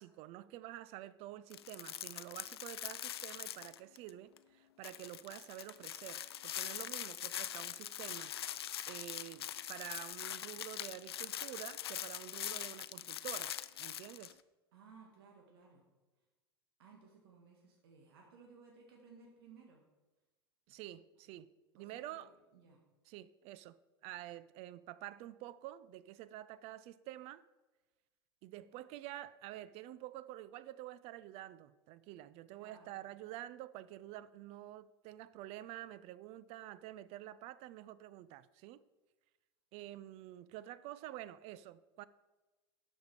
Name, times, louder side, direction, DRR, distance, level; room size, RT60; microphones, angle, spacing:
voice 1, 0.0-8.3 8.9-14.4 20.7-21.5 21.7-22.3 23.1-23.8 24.0-27.4 28.4-38.8 39.7-42.1, right 14 dB, 50° right, 0.4 m, -49 dB
sound 1, 1.5-4.1 4.4-4.5 4.8-14.3, left 11 dB, 85° left, 0.4 m, -43 dB
voice 2, 14.7-15.8 16.8-19.8 21.8-22.3 22.5-22.8 32.5-33.1, right 5 dB, 70° right, 1.7 m, -59 dB
12.0 x 5.4 x 4.9 m
hypercardioid pair, 85°, 13 cm